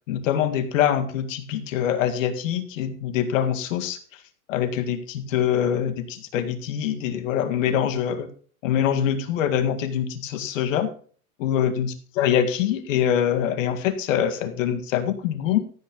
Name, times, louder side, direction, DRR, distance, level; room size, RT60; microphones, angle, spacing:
voice 1, 0.1-4.0 4.5-8.3 8.6-10.9 11.4-15.6, left 9 dB, 60° left, 8 dB, 2.0 m, -24 dB
14.5 x 9.2 x 3.9 m, 0.43 s
supercardioid pair, 175°, 43 cm